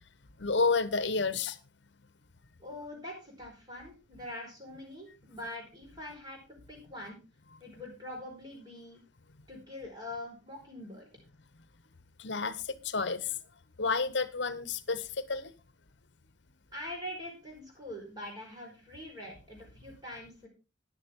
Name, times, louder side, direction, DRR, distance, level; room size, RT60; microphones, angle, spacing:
voice 1, 0.4-1.6 12.2-13.3 13.8-15.5, left 4 dB, 60° left, 1.0 m, -30 dB
voice 2, 2.6-6.4 6.7-7.2 7.6-9.0 9.5-11.1 16.7-20.5, left 1 dB, 20° right, 4.7 m, -43 dB
13.5 x 11.0 x 3.7 m
head